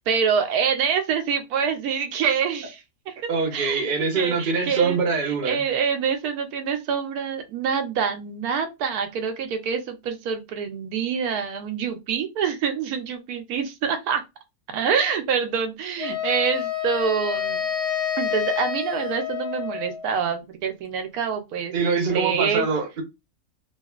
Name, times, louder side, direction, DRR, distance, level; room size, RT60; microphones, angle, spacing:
voice 1, 0.0-2.8 3.1-3.9 4.1-5.0 5.4-14.2 14.7-17.7 18.2-22.7, right 6 dB, 80° right, 1.1 m, -26 dB
voice 2, 3.3-5.6 21.7-23.0, right 4 dB, 45° right, 0.8 m, -24 dB
Wind instrument woodwind instrument, 16.0-20.1, left 9 dB, 40° left, 0.9 m, -28 dB
2.8 x 2.4 x 2.3 m
omnidirectional pair, 1.6 m